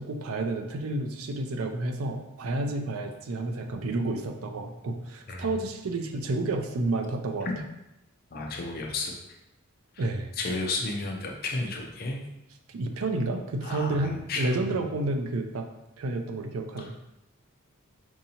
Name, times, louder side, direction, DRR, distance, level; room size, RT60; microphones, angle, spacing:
voice 1, 0.0-7.5 10.0-10.3 12.7-15.7 16.0-16.9, right 2 dB, 80° right, 5 dB, 0.5 m, -30 dB
voice 2, 8.3-9.1 9.9-10.0 10.4-12.2 13.6-14.8 16.8-16.9, left 3 dB, 45° left, 1 dB, 0.6 m, -32 dB
4.6 x 2.7 x 2.8 m, 0.89 s
head